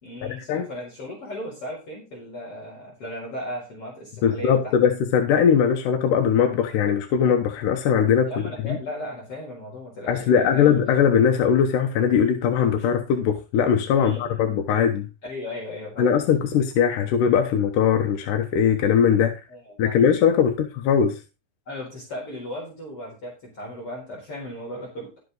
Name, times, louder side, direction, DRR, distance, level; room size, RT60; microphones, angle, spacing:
voice 1, 0.0-4.8 8.3-10.8 13.9-14.6 15.2-16.1 19.5-20.0 21.7-25.2, left 1 dB, 35° left, -3 dB, 4.7 m, -36 dB
voice 2, 4.2-8.8 10.1-15.1 16.0-19.3 19.8-21.2, left 7 dB, 70° left, 5 dB, 2.2 m, -20 dB
12.0 x 7.9 x 4.0 m, 0.30 s
omnidirectional pair, 4.6 m